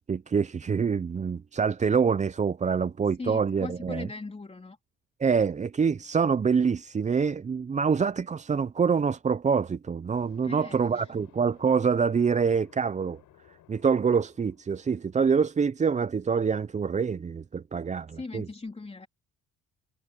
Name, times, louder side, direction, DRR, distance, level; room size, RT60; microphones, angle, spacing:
voice 1, 0.1-4.1 5.2-13.2 13.7-18.5, right 6 dB, 25° right, 0.5 m, -26 dB
voice 2, 3.2-4.8 10.4-11.1 18.1-19.1, left 3 dB, 20° left, 3.1 m, -39 dB
sound 1, 10.1-15.8, left 14 dB, 85° left, 6.6 m, -59 dB
cardioid pair, 90°, 30 cm